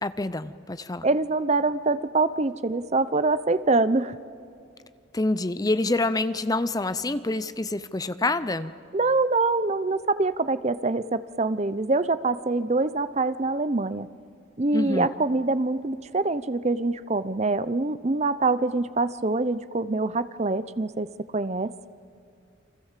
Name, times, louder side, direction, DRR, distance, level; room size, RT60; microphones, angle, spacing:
voice 1, 0.0-1.1 5.1-8.7 14.7-15.1, left 2 dB, 20° left, 14 dB, 0.5 m, -27 dB
voice 2, 1.0-4.2 8.9-14.1 14.6-21.7, right 3 dB, 30° right, 15 dB, 0.6 m, -25 dB
29.5 x 24.5 x 7.4 m, 2.5 s
head